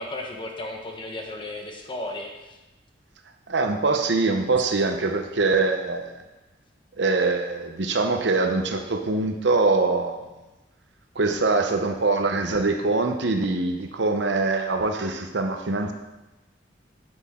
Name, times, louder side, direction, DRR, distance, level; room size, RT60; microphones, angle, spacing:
voice 1, 0.0-2.6, left 1 dB, 25° left, 2 dB, 1.0 m, -34 dB
voice 2, 3.5-6.1 7.0-10.2 11.1-15.9, right 3 dB, 75° right, 5 dB, 0.9 m, -23 dB
8.1 x 8.0 x 3.7 m, 1.1 s
head